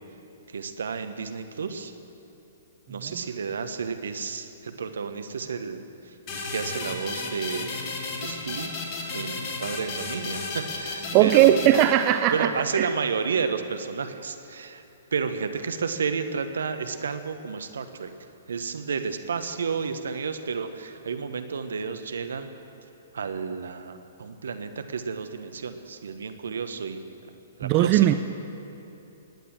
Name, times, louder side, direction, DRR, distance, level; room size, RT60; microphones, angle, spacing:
voice 1, 0.5-1.9 2.9-5.9 6.3-7.8 8.2-8.7 9.1-11.6 12.3-14.8 15.1-18.1 18.5-22.5 23.1-27.1 27.6-28.1, right 5 dB, 70° right, 9 dB, 1.1 m, -31 dB
sound 1, 6.3-12.6, left 3 dB, 35° left, 2.7 m, -34 dB
voice 2, 11.1-12.9 27.6-28.1, right 12 dB, 35° right, 10 dB, 0.5 m, -19 dB
18.5 x 9.5 x 7.6 m, 3.0 s
figure-of-eight pair, 120°, 0 cm